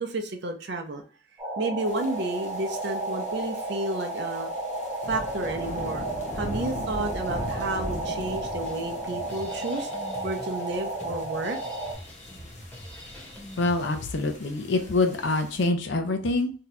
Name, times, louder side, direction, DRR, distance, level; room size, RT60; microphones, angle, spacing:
voice 1, 0.0-1.0 1.6-4.5 5.0-6.1 6.3-9.9 10.2-11.6, right 2 dB, 55° right, 5 dB, 0.5 m, -31 dB
sound 1, 1.4-11.9, right 2 dB, 20° right, 0.8 m, -33 dB
sound 2, 1.9-15.7, equal, 35° left, 0.9 m, -41 dB
Drum kit, 8.3-14.2, left 1 dB, 10° left, 0.9 m, -45 dB
voice 2, 13.6-16.5, left 2 dB, 60° left, 5 dB, 0.5 m, -25 dB
2.7 x 2.3 x 4.0 m, 0.39 s
head